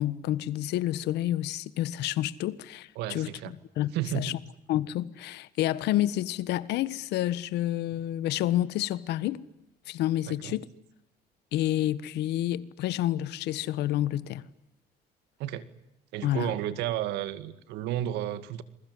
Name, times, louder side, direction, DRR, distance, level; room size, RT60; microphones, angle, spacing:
voice 1, 0.0-3.3 3.8-4.4 4.7-9.4 9.9-10.7 11.5-14.5 16.2-16.5, left 13 dB, 80° left, 1.5 m, -29 dB
voice 2, 3.0-3.5 3.9-4.4 10.3-10.6 15.4-15.7 16.1-18.6, right 12 dB, 90° right, 2.1 m, -32 dB
28.0 x 22.0 x 9.6 m
cardioid pair, 110°, 17 cm